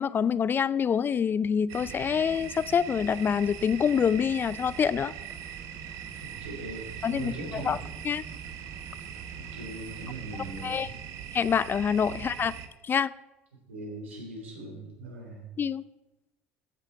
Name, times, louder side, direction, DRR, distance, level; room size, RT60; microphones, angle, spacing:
voice 1, 0.0-5.1 7.0-7.8 8.0-8.2 10.6-10.9 11.3-12.5 12.8-13.1 15.6-15.8, left 7 dB, 30° left, 19 dB, 0.4 m, -26 dB
sound 1, 1.7-12.7, right 9 dB, 60° right, 1.0 m, -41 dB
sound 2, 1.9-10.8, right 2 dB, 40° right, 4.6 m, -52 dB
voice 2, 6.2-7.8 9.4-10.9 12.1-12.2 13.7-15.6, right 2 dB, 90° right, 0 dB, 3.6 m, -40 dB
14.5 x 6.8 x 4.6 m, 1.1 s
hypercardioid pair, 70°, 7 cm